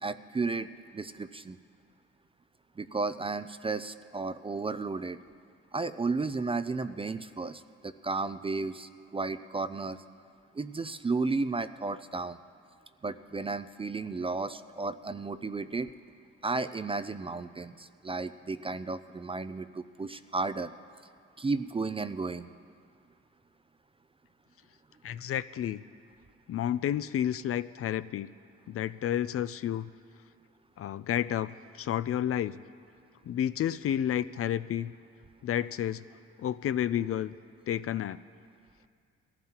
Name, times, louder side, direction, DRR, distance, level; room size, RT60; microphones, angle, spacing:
voice 1, 0.0-1.6 2.8-5.2 5.7-10.0 10.5-12.4 13.0-15.9 16.4-20.7 21.4-22.5, right 3 dB, 20° right, 12 dB, 0.4 m, -33 dB
voice 2, 25.0-25.8 26.5-28.3 28.7-29.9 30.8-32.6 33.3-34.9 35.4-36.0 36.4-37.3 37.7-38.2, left 10 dB, 50° left, 15 dB, 0.4 m, -30 dB
21.0 x 14.5 x 2.9 m, 2.2 s
cardioid pair, 90°, 30 cm